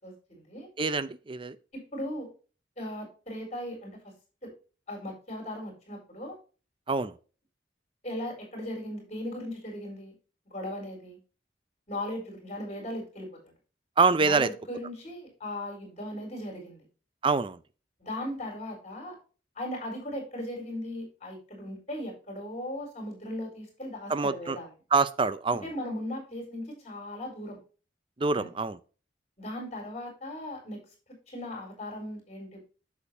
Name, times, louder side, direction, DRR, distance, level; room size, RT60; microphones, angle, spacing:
voice 1, 0.0-0.7 1.7-2.3 2.8-4.0 4.4-4.5 4.9-6.3 8.0-10.1 10.5-11.2 11.9-13.4 14.2-16.8 18.0-19.1 19.5-24.7 25.5-27.6 28.3-28.5 29.4-30.8 31.1-32.6, left 1 dB, 40° left, 4.2 m, -38 dB
voice 2, 0.8-1.6 6.9-7.1 14.0-14.5 17.2-17.6 24.1-24.6 24.9-25.6 28.2-28.7, right 4 dB, 30° right, 0.5 m, -25 dB
8.2 x 7.2 x 2.7 m
head